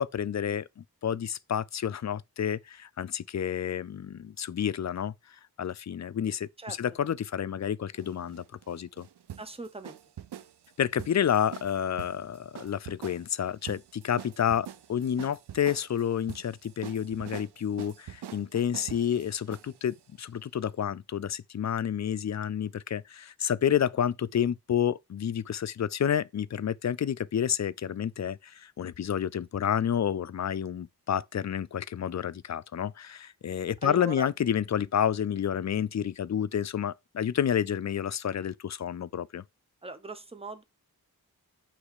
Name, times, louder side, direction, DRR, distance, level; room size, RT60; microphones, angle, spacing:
voice 1, 0.0-5.1 5.6-9.1 10.8-39.4, left 9 dB, 45° left, 0.4 m, -30 dB
sound 1, 7.9-20.0, right 10 dB, 85° right, 0.5 m, -45 dB
voice 2, 9.4-10.0 33.8-34.3 39.8-40.6, right 2 dB, 15° right, 1.0 m, -39 dB
8.3 x 3.2 x 4.8 m
wide cardioid pair, 75°, 39 cm